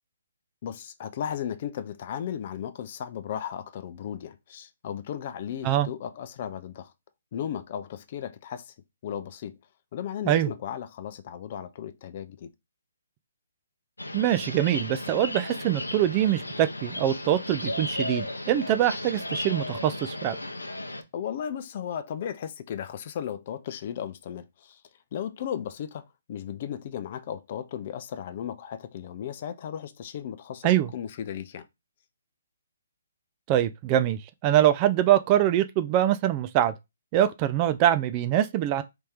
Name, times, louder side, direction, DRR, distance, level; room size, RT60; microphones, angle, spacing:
voice 1, 0.6-6.9 7.3-8.7 9.0-9.6 9.9-12.5 21.1-24.8 25.1-31.7, left 9 dB, 45° left, 0.5 m, -35 dB
sound 1, 14.0-21.0, left 2 dB, 90° left, 0.6 m, -35 dB
voice 2, 14.1-20.4 30.6-30.9 33.5-36.7 37.1-38.8, right 12 dB, 30° right, 0.4 m, -24 dB
3.4 x 2.8 x 3.4 m
figure-of-eight pair, 135°, 0 cm